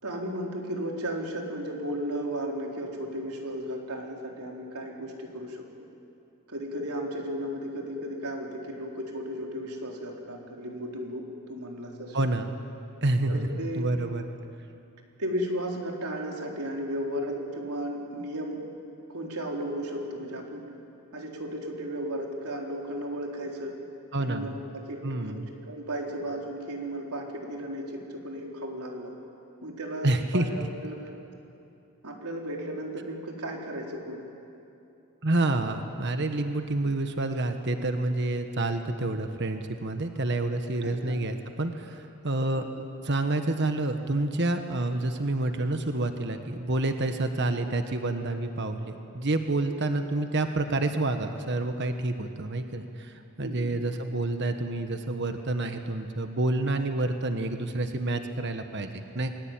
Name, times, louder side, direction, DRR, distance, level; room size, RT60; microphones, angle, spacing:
voice 1, 0.0-5.7 6.5-12.2 13.3-13.8 15.2-18.6 19.1-20.6 21.1-23.8 24.2-25.4 25.6-29.1 29.6-31.0 32.0-34.3 36.4-36.5 40.8-41.2 42.6-42.7 53.4-53.7, equal, 85° right, 0 dB, 4.2 m, -35 dB
voice 2, 12.1-12.5 13.0-13.5 13.7-14.2 24.1-24.5 25.0-25.5 30.0-30.7 35.2-42.6 43.0-59.4, right 2 dB, 50° right, 7 dB, 1.4 m, -28 dB
29.0 x 21.5 x 9.1 m, 2.8 s
head